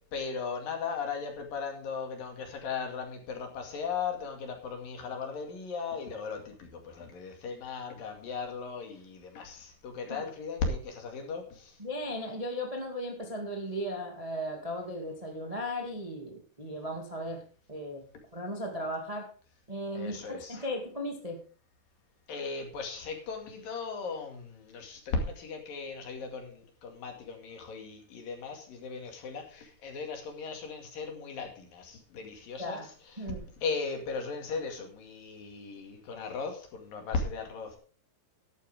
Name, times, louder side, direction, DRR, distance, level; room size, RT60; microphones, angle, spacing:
voice 1, 0.1-11.7 20.0-20.6 22.3-32.8 33.6-37.8, left 5 dB, 60° left, 3 dB, 3.9 m, -37 dB
voice 2, 11.8-17.4 17.7-18.1 18.3-19.3 19.7-21.4 32.6-32.9 33.2-33.5, equal, 15° right, 1 dB, 1.4 m, -36 dB
13.0 x 11.5 x 3.6 m, 0.41 s
omnidirectional pair, 4.8 m